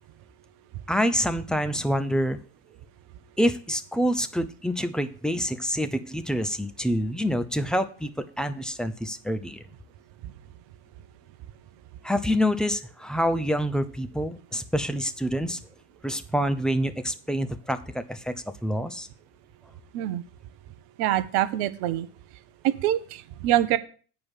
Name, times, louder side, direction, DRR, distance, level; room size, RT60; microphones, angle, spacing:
voice 1, 0.9-2.4 3.4-9.6 12.0-15.6 16.0-18.3 18.6-19.1, equal, ahead, 8 dB, 0.7 m, -27 dB
voice 2, 21.0-22.1 22.6-23.8, right 13 dB, 55° right, 14 dB, 0.9 m, -25 dB
9.3 x 4.8 x 7.2 m, 0.39 s
figure-of-eight pair, 70°, 47 cm